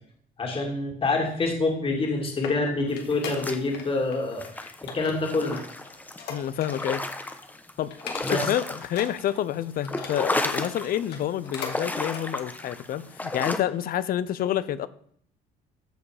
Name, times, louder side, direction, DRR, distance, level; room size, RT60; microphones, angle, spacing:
voice 1, 0.4-5.6 8.2-8.4, left 3 dB, 30° left, 1 dB, 2.4 m, -27 dB
sound 1, 1.9-3.9 4.1-4.5 4.9-7.0 7.3-7.5 7.9-8.6 8.9-10.5 10.9-11.8 12.1-12.3 12.8-12.9, left 6 dB, 80° left, 2.1 m, -40 dB
sound 2, 3.1-4.0 4.3-7.7 8.0-9.4 9.7-11.1 11.5-13.6, left 2 dB, 10° left, 1.0 m, -33 dB
voice 2, 6.3-7.0 7.8-14.9, left 11 dB, 60° left, 16 dB, 0.7 m, -28 dB
14.0 x 5.0 x 5.0 m, 0.63 s
cardioid pair, 110°, 17 cm